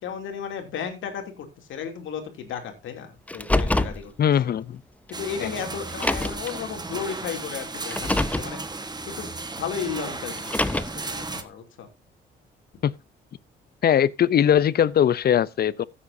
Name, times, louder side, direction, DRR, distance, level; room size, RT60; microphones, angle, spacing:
voice 1, 0.0-4.1 5.1-8.8 9.2-11.9, left 7 dB, 80° left, 2.9 m, -34 dB
Car, 3.3-4.0 5.1-5.2 5.9-6.5 7.8-8.5 10.3-11.1, left 1 dB, 5° left, 0.7 m, -25 dB
voice 2, 4.2-4.8 5.4-5.5 12.8-12.9 13.8-15.8, left 9 dB, 50° left, 0.7 m, -20 dB
sound 1, 5.1-11.4, right 3 dB, 20° right, 1.4 m, -35 dB
15.0 x 8.5 x 2.7 m
cardioid pair, 90°, 20 cm